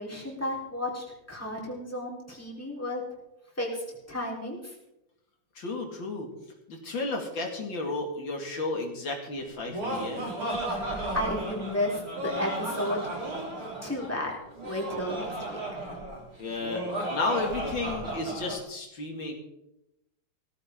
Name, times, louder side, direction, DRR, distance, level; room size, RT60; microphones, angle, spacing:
voice 1, 0.0-3.0 3.6-4.7 9.8-10.1 10.7-13.1 13.8-14.3 14.6-15.8, left 1 dB, 5° left, -2 dB, 4.1 m, -33 dB
voice 2, 5.5-6.3 6.7-10.3 16.4-16.8 17.1-19.3, left 3 dB, 75° left, 1 dB, 3.1 m, -32 dB
Laughter, 9.4-18.6, right 1 dB, 45° right, 4.4 m, -34 dB
18.0 x 15.0 x 3.8 m, 0.87 s
omnidirectional pair, 2.1 m